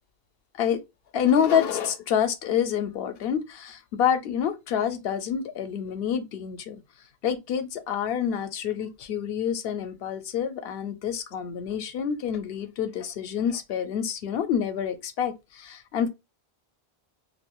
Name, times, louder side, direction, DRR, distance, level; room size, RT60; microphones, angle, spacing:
voice 1, 1.1-6.8 7.2-16.1, left 8 dB, 75° left, 0.8 m, -27 dB
2.5 x 2.2 x 3.6 m
omnidirectional pair, 1.0 m